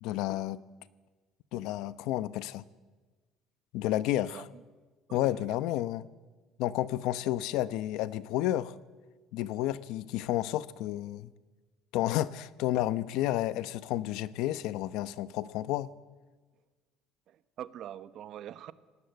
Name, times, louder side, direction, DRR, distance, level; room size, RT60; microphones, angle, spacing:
voice 1, 0.0-0.6 1.5-2.6 3.7-4.4 5.1-6.1 6.6-8.7 9.3-11.3 11.9-15.9, left 14 dB, 75° left, 15 dB, 0.9 m, -31 dB
voice 2, 4.2-4.6 5.1-5.6 17.3-18.7, right 11 dB, 55° right, 14 dB, 1.0 m, -45 dB
27.0 x 18.5 x 8.1 m, 1.3 s
cardioid pair, 135°, 0 cm